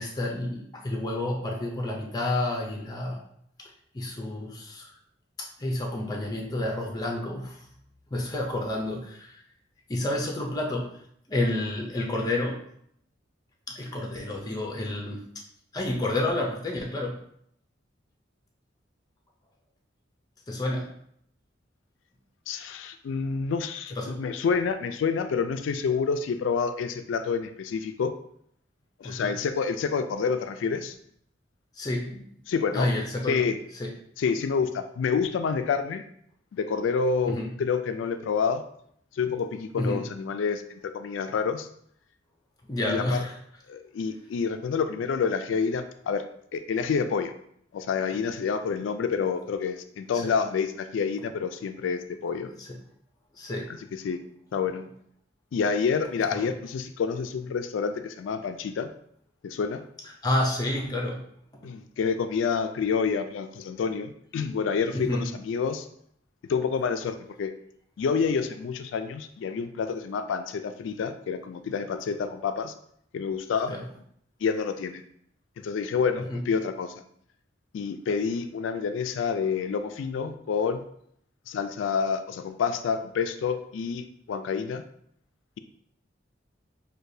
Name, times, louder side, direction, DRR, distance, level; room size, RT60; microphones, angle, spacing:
voice 1, 0.0-3.2 3.6-3.7 3.9-4.9 5.4-7.7 8.1-9.4 9.9-11.0 11.3-12.6 13.7-15.3 15.7-17.2 20.5-20.9 23.9-24.2 29.0-29.3 31.8-32.3 32.7-33.4 33.8-33.9 37.2-37.5 39.8-40.1 42.7-43.4 50.1-50.3 52.6-52.8 53.4-53.7 56.3-56.5 60.2-61.2 64.9-65.3 73.7-73.8 76.3-76.4, left 1 dB, 20° left, 0 dB, 0.5 m, -30 dB
voice 2, 22.5-28.1 29.0-31.0 32.5-32.9 33.3-33.6 34.2-36.0 36.5-38.6 39.1-41.7 42.9-43.2 43.7-46.2 46.5-47.3 47.7-52.5 53.9-54.2 54.5-54.9 55.5-58.9 59.4-59.8 61.6-65.9 66.5-67.5 68.0-72.7 73.1-73.7 74.4-75.0 75.6-76.9 77.7-80.8 81.5-84.8, left 5 dB, 85° left, 9 dB, 0.3 m, -28 dB
6.4 x 2.2 x 2.7 m, 0.69 s
head